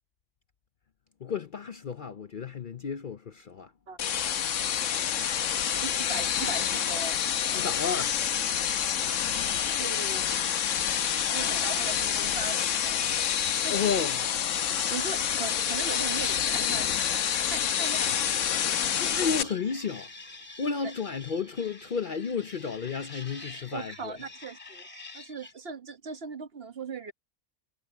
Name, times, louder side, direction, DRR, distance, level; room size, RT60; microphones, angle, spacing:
voice 1, 1.2-3.7 7.5-8.1 13.7-14.3 19.0-20.1 20.6-24.2, left 6 dB, 50° left, 0.7 m, -32 dB
sound 1, 4.0-19.4, left 9 dB, 75° left, 1.2 m, -28 dB
voice 2, 5.7-7.2 9.8-10.4 11.0-13.1 13.6-13.8 14.9-17.0 17.4-18.2 20.8-20.9 23.7-24.9 25.1-27.1, right 5 dB, 50° right, 1.4 m, -39 dB
sound 2, 8.6-14.4 14.7-25.5, left 2 dB, 25° left, 3.1 m, -47 dB
omnidirectional pair, 1.3 m